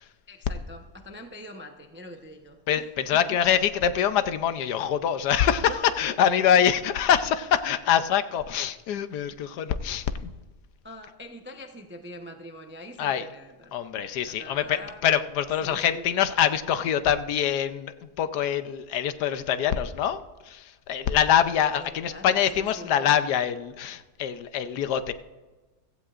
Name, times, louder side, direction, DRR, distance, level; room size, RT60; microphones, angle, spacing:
voice 1, 0.3-3.6 5.7-5.9 10.8-13.7 14.2-15.0 15.6-16.1 21.7-22.3 22.5-23.3, left 1 dB, 15° right, 4 dB, 0.4 m, -44 dB
voice 2, 2.7-10.3 13.0-13.2 13.7-25.1, left 9 dB, 75° left, 11 dB, 1.2 m, -25 dB
16.0 x 15.0 x 2.5 m, 1.2 s
omnidirectional pair, 1.8 m